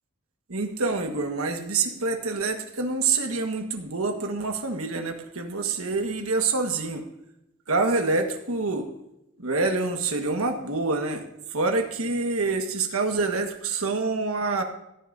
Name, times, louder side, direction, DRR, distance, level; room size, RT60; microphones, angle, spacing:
voice 1, 0.5-7.0 7.7-8.9 9.4-11.2 11.5-14.6, right 3 dB, 75° right, 5 dB, 1.6 m, -26 dB
16.5 x 10.0 x 2.7 m, 0.87 s
head